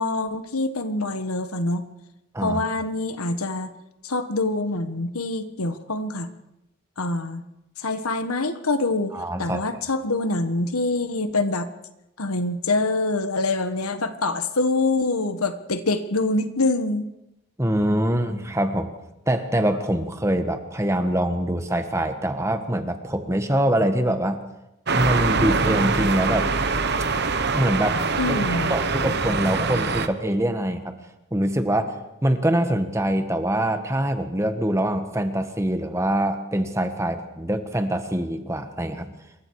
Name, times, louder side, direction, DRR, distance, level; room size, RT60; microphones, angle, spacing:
voice 1, 0.0-1.9 2.4-3.7 4.0-6.3 7.0-7.4 7.8-11.7 12.2-17.0 28.2-28.7, left 2 dB, 90° left, 9 dB, 1.5 m, -25 dB
voice 2, 9.1-9.6 17.6-18.9 19.3-24.4 24.9-26.5 27.5-28.0 28.4-31.0 31.3-32.0 32.2-39.1, right 1 dB, 15° right, 7 dB, 1.5 m, -24 dB
sound 1, 24.9-30.1, right 4 dB, 50° right, 1.2 m, -23 dB
27.0 x 23.0 x 4.9 m, 0.90 s
head